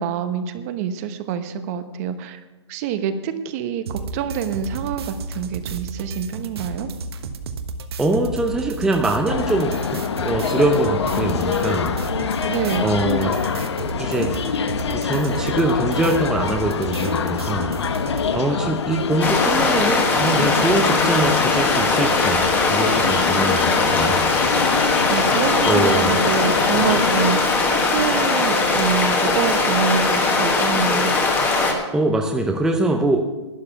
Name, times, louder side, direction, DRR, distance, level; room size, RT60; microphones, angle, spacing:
voice 1, 0.0-2.4 2.7-6.9 12.5-12.9 25.1-31.1, right 8 dB, 35° right, 10 dB, 0.9 m, -26 dB
sound 1, 3.9-18.3, right 4 dB, 60° right, 1.2 m, -32 dB
voice 2, 8.0-12.0 12.8-13.4 14.0-14.4 14.9-17.8 18.3-24.3 25.0-25.4 25.6-26.2 31.9-33.3, right 2 dB, 5° right, 3 dB, 0.6 m, -23 dB
sound 2, 9.3-27.3, left 6 dB, 70° left, 1.1 m, -25 dB
sound 3, 19.2-31.7, left 3 dB, 15° left, 1.4 m, -20 dB
12.0 x 9.6 x 5.8 m, 1.2 s
hypercardioid pair, 150°, 15 cm